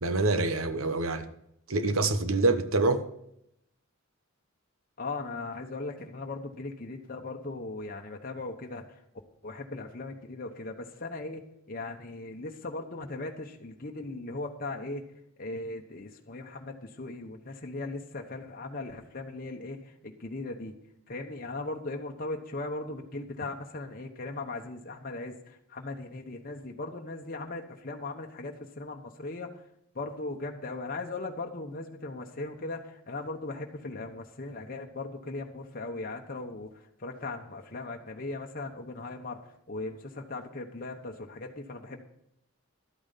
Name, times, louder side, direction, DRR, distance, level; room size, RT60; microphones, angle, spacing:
voice 1, 0.0-1.2 1.7-3.0, right 3 dB, 90° right, 1.0 m, -26 dB
voice 2, 5.0-8.8 9.4-11.4 11.7-15.0 15.4-20.7 21.1-29.5 29.9-36.7 37.0-39.4 39.7-42.0, left 2 dB, 45° left, 1.0 m, -38 dB
12.0 x 8.7 x 5.7 m
head